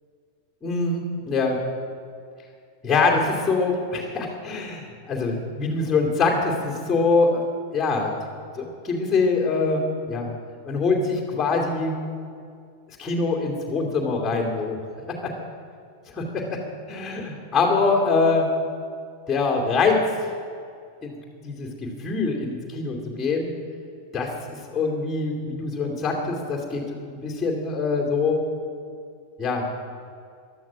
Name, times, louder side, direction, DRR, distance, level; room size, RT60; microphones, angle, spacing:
voice 1, 0.6-1.6 2.8-7.4 7.7-8.1 8.5-10.3 10.6-12.0 13.0-14.8 16.2-16.6 16.9-18.5 19.3-20.0 21.0-21.1 21.4-21.7 22.0-23.5 24.1-24.3 24.7-28.4 29.4-29.6, left 4 dB, 15° left, -2 dB, 2.6 m, -24 dB
15.5 x 12.0 x 6.1 m, 2.3 s
figure-of-eight pair, 90°, 0 cm